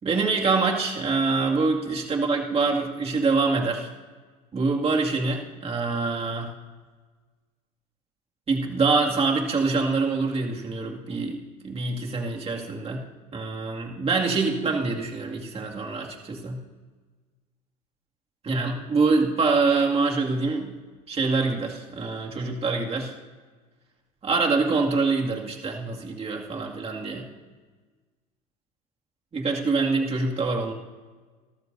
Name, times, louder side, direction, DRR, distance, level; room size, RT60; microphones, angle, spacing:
voice 1, 0.0-3.9 4.5-6.5 8.5-11.4 11.6-13.0 13.3-16.6 18.4-20.8 21.1-23.1 24.2-27.3 29.3-30.7, right 4 dB, 30° right, 0 dB, 2.3 m, -25 dB
25.5 x 14.0 x 2.7 m, 1.4 s
hypercardioid pair, 75°, 20 cm